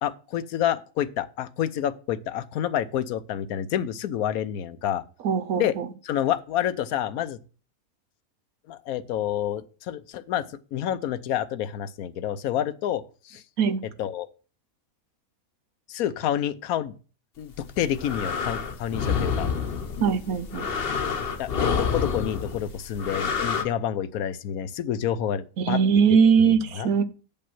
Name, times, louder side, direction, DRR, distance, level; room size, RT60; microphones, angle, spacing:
voice 1, 0.0-5.0 5.6-5.7 6.0-7.4 8.7-10.4 10.7-13.4 14.0-14.3 15.9-16.9 17.4-19.5 21.4-25.8 26.4-26.9, left 10 dB, 80° left, 1.1 m, -28 dB
voice 2, 5.2-5.9 13.6-13.8 20.0-20.7 25.6-27.0, right 6 dB, 75° right, 1.3 m, -21 dB
sound 1, 17.6-23.6, left 6 dB, 45° left, 1.0 m, -28 dB
8.4 x 5.5 x 5.9 m
omnidirectional pair, 1.5 m